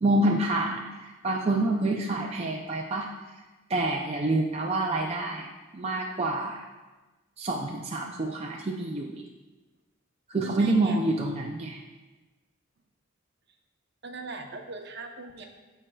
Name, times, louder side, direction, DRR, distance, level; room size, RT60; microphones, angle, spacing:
voice 1, 0.0-3.1 3.7-6.6 7.4-9.2 10.3-11.8, right 2 dB, 30° right, 0 dB, 0.4 m, -27 dB
voice 2, 10.4-11.0 14.0-15.5, right 3 dB, 55° right, 3 dB, 0.8 m, -40 dB
13.5 x 4.5 x 2.3 m, 1.2 s
head